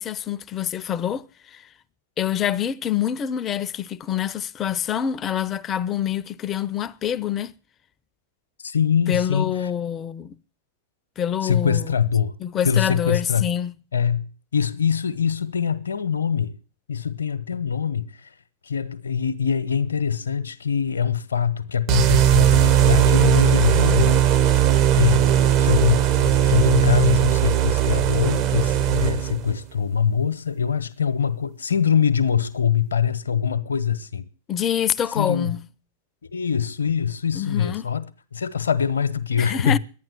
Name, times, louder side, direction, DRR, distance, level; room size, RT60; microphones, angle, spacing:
voice 1, 0.0-1.7 2.2-7.5 9.1-10.4 11.2-11.9 12.4-13.8 34.5-35.7 37.3-37.9 39.4-39.8, left 9 dB, 25° left, 0.6 m, -26 dB
voice 2, 8.6-9.6 11.4-12.3 12.6-13.5 13.9-16.6 16.9-18.3 18.6-24.4 24.9-25.2 25.6-34.3 35.1-35.6 36.3-38.1 38.3-39.8, left 7 dB, 70° left, 1.0 m, -23 dB
sound 1, 21.9-29.5, right 10 dB, 40° right, 1.0 m, -18 dB
11.0 x 9.3 x 9.7 m
figure-of-eight pair, 90°, 0 cm